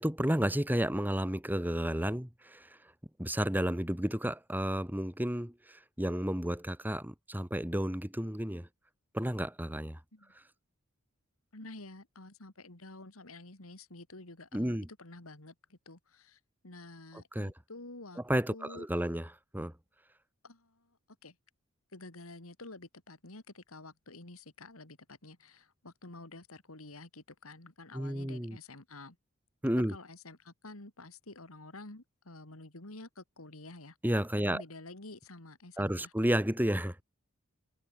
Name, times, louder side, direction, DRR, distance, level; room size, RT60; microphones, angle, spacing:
voice 1, 0.0-2.7 3.2-8.7 9.1-10.0 14.5-14.9 17.4-17.5 18.3-19.3 19.5-19.7 27.9-28.6 29.6-30.0 34.0-34.6 35.8-37.0, equal, 10° right, 2.1 m, -31 dB
voice 2, 11.5-18.2 18.5-18.9 20.4-21.0 21.2-21.4 21.9-29.2 29.8-34.0 34.4-36.1, left 2 dB, 90° left, 3.3 m, -49 dB
head